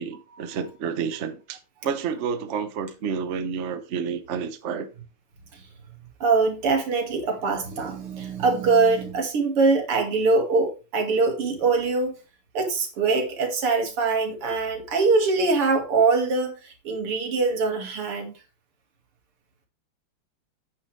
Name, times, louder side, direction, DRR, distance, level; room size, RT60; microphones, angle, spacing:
voice 1, 0.0-4.9, right 6 dB, 45° right, 1.0 m, -30 dB
voice 2, 6.2-12.1 12.5-18.3, right 4 dB, 85° right, 3.1 m, -23 dB
9.4 x 9.0 x 3.3 m
omnidirectional pair, 2.4 m